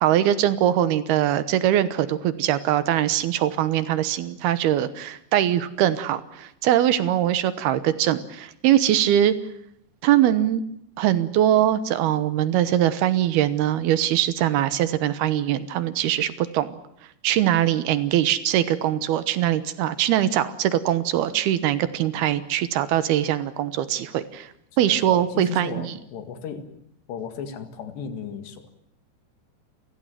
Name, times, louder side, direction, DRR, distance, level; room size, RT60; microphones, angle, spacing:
voice 1, 0.0-9.3 10.0-10.6 11.0-16.8 17.2-24.5 24.8-25.9, right 12 dB, 70° right, 14 dB, 2.7 m, -22 dB
voice 2, 24.7-26.7 27.1-28.7, left 7 dB, 65° left, 9 dB, 4.1 m, -35 dB
29.5 x 15.5 x 9.2 m, 0.77 s
omnidirectional pair, 5.4 m